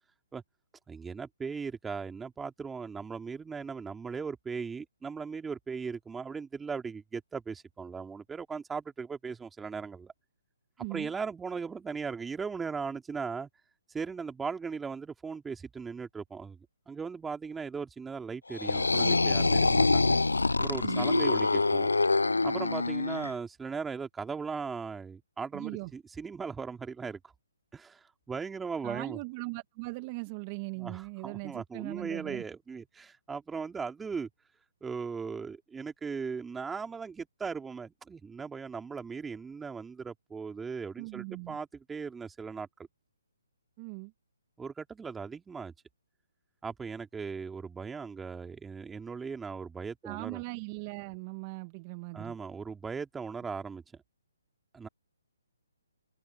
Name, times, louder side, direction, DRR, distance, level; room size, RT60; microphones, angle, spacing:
voice 1, 0.9-10.1 10.9-13.5 13.9-16.6 16.9-20.2 20.6-21.9 22.4-27.3 27.7-29.2 30.8-34.3 34.8-42.7 44.6-45.7 46.6-50.4 52.1-53.8 54.7-54.9, right 5 dB, 10° right, 2.9 m, -38 dB
voice 2, 10.8-11.1 20.8-21.1 25.5-25.9 28.8-32.4 41.0-41.6 43.8-44.1 50.0-52.3, right 28 dB, 30° right, 1.5 m, -39 dB
sound 1, 18.5-23.3, left 3 dB, 90° left, 0.5 m, -25 dB
figure-of-eight pair, 140°, 0 cm